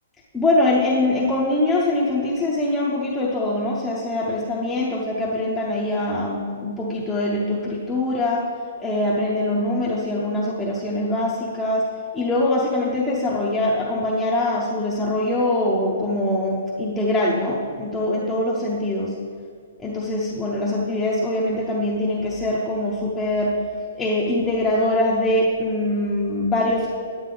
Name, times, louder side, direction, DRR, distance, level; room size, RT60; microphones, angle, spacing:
voice 1, 0.3-8.4 8.8-19.1 19.8-23.6 23.9-26.9, left 1 dB, 5° left, -8 dB, 0.7 m, -23 dB
9.3 x 9.2 x 3.8 m, 2.1 s
hypercardioid pair, 170°, 0 cm